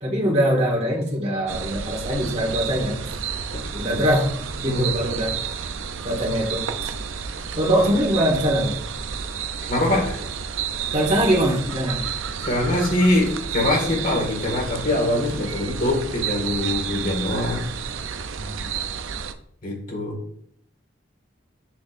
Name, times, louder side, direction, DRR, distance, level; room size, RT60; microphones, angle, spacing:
voice 1, 0.0-3.0 3.7-4.3 4.6-5.3 6.0-6.6 7.6-8.7 10.9-12.0 18.4-18.5, equal, 35° right, -3 dB, 1.8 m, -22 dB
sound 1, 1.5-19.3, right 7 dB, 85° right, 0.5 m, -31 dB
voice 2, 9.7-10.2 12.4-17.7 19.6-20.2, left 1 dB, 40° left, 0 dB, 1.9 m, -23 dB
7.4 x 6.4 x 2.5 m, 0.67 s
head